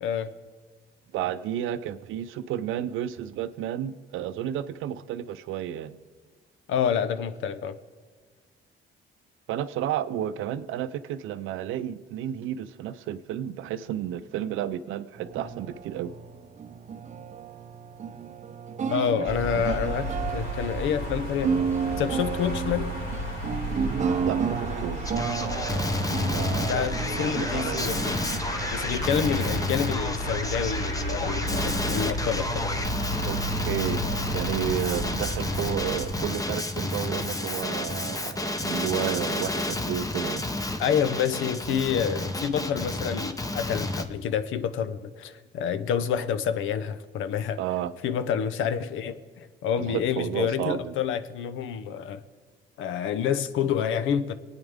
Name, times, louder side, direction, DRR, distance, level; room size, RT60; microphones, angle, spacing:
voice 1, 0.0-0.3 6.7-7.8 18.9-21.6 22.0-22.9 26.5-28.1 28.7-32.7 40.8-47.6 48.0-52.2 52.8-54.3, left 8 dB, 85° left, 0.7 m, -28 dB
voice 2, 1.1-6.0 9.5-16.1 19.2-19.3 19.5-19.6 24.2-25.2 26.3-28.0 33.2-34.0 34.3-40.5 47.6-47.9 49.8-50.9, right 11 dB, 85° right, 0.6 m, -32 dB
sound 1, 15.2-29.9, right 6 dB, 35° right, 0.5 m, -32 dB
sound 2, 19.3-36.3, right 1 dB, 70° left, 3.9 m, -33 dB
Male speech man speaking, 25.0-44.0, left 2 dB, 15° left, 0.9 m, -30 dB
24.0 x 9.1 x 3.6 m
cardioid pair, 90°, 20 cm